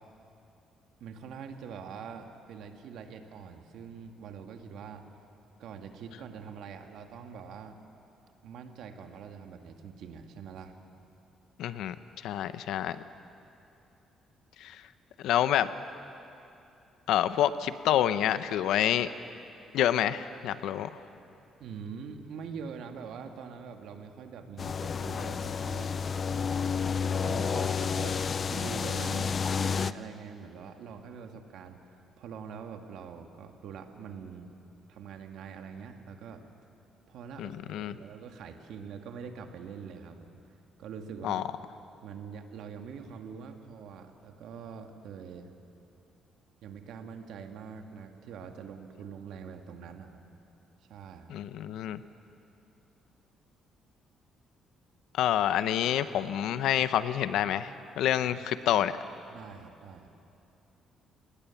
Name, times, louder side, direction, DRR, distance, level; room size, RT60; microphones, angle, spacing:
voice 1, 1.0-5.0 5.6-7.7 8.4-10.7 21.6-25.9 27.2-28.2 28.5-34.6 34.9-36.4 37.1-40.4 40.8-41.4 42.0-45.5 46.6-50.2 50.9-51.4 58.2-58.5 59.3-60.1, right 6 dB, 75° right, 5 dB, 1.9 m, -44 dB
voice 2, 11.6-11.9 12.2-13.0 14.6-14.8 15.2-15.7 17.1-19.1 19.7-20.9 37.4-38.0 41.2-41.4 51.3-52.0 55.2-58.9, left 11 dB, 80° left, 13 dB, 0.8 m, -27 dB
sound 1, 24.6-29.9, left 6 dB, 35° left, 0.5 m, -30 dB
28.0 x 19.5 x 7.2 m, 2.8 s
cardioid pair, 125°, 0 cm